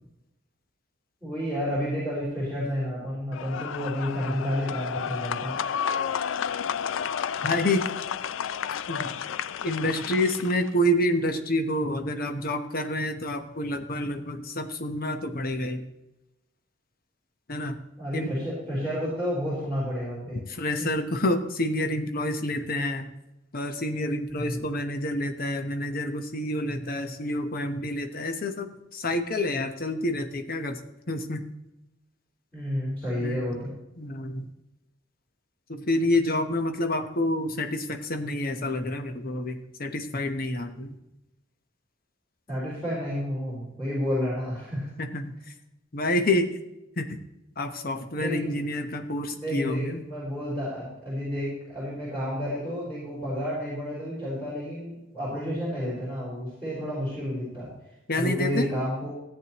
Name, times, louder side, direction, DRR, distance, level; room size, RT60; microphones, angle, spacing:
voice 1, 1.2-5.6 18.0-20.4 20.8-20.9 24.3-24.6 32.5-33.7 42.5-44.9 48.1-48.6 49.3-57.7 58.1-59.1, equal, 10° left, -8 dB, 4.1 m, -31 dB
sound 1, 3.3-10.7, left 8 dB, 80° left, 0.4 m, -31 dB
voice 2, 7.4-7.9 8.9-9.1 9.6-15.9 17.5-17.8 18.1-18.4 20.5-23.1 23.5-30.8 31.1-31.5 33.2-33.4 34.0-34.5 35.7-41.0 45.0-45.4 45.9-46.6 47.0-47.2 47.6-50.1 58.1-58.7, left 1 dB, 50° left, 7 dB, 1.0 m, -28 dB
14.0 x 8.8 x 3.0 m, 0.93 s
head